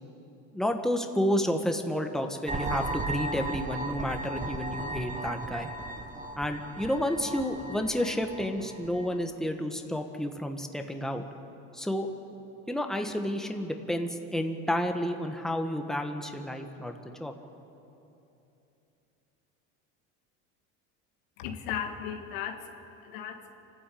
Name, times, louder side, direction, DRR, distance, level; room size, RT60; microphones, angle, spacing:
voice 1, 0.5-5.7 6.4-11.2 11.7-12.1 12.7-16.9 17.2-17.3, equal, ahead, 4 dB, 1.6 m, -30 dB
sound 1, 2.5-9.2, right 2 dB, 20° right, 1.6 m, -36 dB
voice 2, 21.4-23.6, left 8 dB, 85° left, 5 dB, 2.0 m, -37 dB
27.0 x 13.0 x 8.7 m, 2.9 s
supercardioid pair, 105°, 34 cm